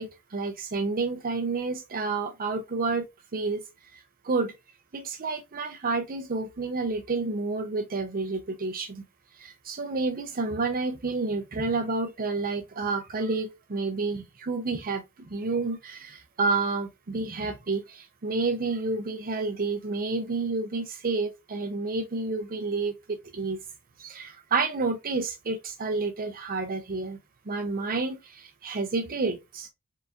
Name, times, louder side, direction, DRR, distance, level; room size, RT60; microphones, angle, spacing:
voice 1, 0.0-3.6 3.9-4.5 4.9-9.0 9.3-23.6 24.0-27.2 27.5-29.7, right 3 dB, 40° right, 0.6 m, -30 dB
4.5 x 4.0 x 2.4 m
head